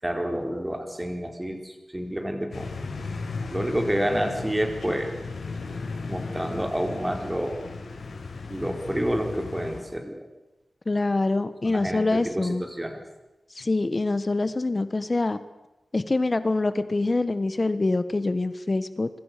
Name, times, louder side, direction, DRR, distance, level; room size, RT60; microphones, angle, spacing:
voice 1, 0.0-2.7 3.5-5.1 6.1-7.6 8.5-10.2 11.6-13.0, equal, 10° right, 4 dB, 4.4 m, -29 dB
sound 1, 2.5-9.8, left 4 dB, 85° left, 6.2 m, -36 dB
voice 2, 10.9-12.6 13.5-15.4 15.9-19.1, left 2 dB, 30° left, 12 dB, 1.3 m, -25 dB
26.0 x 24.0 x 6.8 m, 1.0 s
wide cardioid pair, 135°, 0 cm